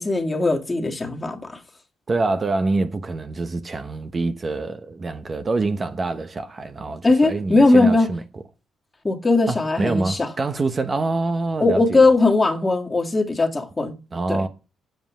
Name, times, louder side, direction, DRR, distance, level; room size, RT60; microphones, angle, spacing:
voice 1, 0.0-1.6 7.0-8.1 9.0-10.3 11.6-14.0 14.3-14.4, left 2 dB, 20° left, 1.9 m, -19 dB
voice 2, 2.1-8.2 9.5-12.1 14.1-14.5, right 3 dB, 35° right, 1.1 m, -25 dB
7.9 x 7.3 x 7.3 m
cardioid pair, 90°, 0 cm